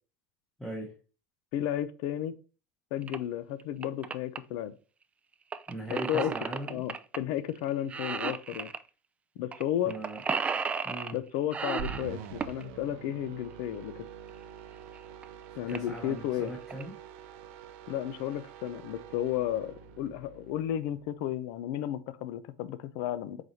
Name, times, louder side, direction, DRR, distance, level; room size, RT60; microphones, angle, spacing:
voice 1, 0.6-0.9 5.7-6.8 9.8-10.2 10.8-11.2 15.7-16.9, right 1 dB, 5° left, 1.1 m, -39 dB
voice 2, 1.5-2.3 2.9-4.7 5.9-6.3 6.7-8.7 9.4-9.9 11.1-14.0 15.6-16.5 17.9-23.4, left 11 dB, 75° left, 0.5 m, -33 dB
sound 1, 3.0-3.2 3.6-4.4 5.5-7.2 7.5-7.6 7.9-8.8 9.5-9.6 9.9-11.2 11.5-12.6 14.3-14.4 15.0-15.1 15.2-15.3 15.7-16.0 16.5-16.8, right 5 dB, 20° right, 0.3 m, -33 dB
sound 2, 11.8-21.2, right 8 dB, 85° right, 0.6 m, -46 dB
4.7 x 4.0 x 2.8 m
supercardioid pair, 125°, 6 cm